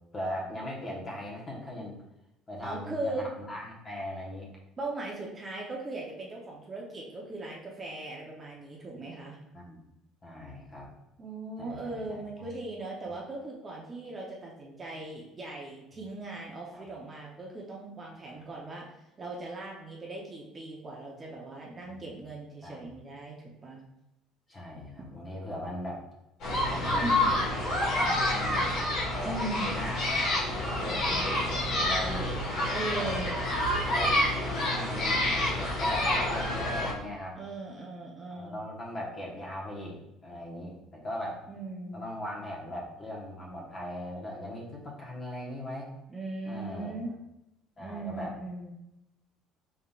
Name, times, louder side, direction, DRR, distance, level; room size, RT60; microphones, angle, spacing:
voice 1, 0.1-2.0 2.5-4.5 9.5-9.8 10.2-10.9 11.6-12.5 16.7-16.8 21.8-22.1 22.6-22.9 24.5-26.1 26.7-28.8 29.1-32.3 32.9-33.3 33.9-37.4 38.3-41.4 41.9-45.9 46.4-47.1 47.8-48.3, left 1 dB, 25° left, -3 dB, 1.1 m, -39 dB
voice 2, 2.6-3.3 4.8-9.4 11.2-18.9 19.2-23.8 27.0-27.2 29.2-29.7 32.7-33.3 37.4-38.6 41.5-42.0 46.1-47.1 47.8-48.8, right 2 dB, 20° right, -2 dB, 0.7 m, -39 dB
sound 1, 26.4-36.9, left 1 dB, 55° left, 1.4 m, -28 dB
5.3 x 3.7 x 2.4 m, 0.92 s
cardioid pair, 150°, 0 cm